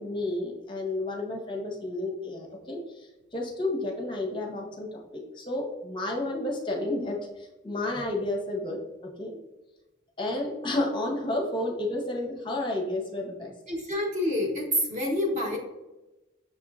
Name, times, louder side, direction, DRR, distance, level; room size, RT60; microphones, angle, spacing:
voice 1, 0.0-9.3 10.2-13.5, left 2 dB, 25° left, 0 dB, 0.6 m, -31 dB
voice 2, 13.7-15.6, left 1 dB, 35° right, 0 dB, 0.9 m, -27 dB
6.5 x 2.9 x 2.3 m, 1.0 s
head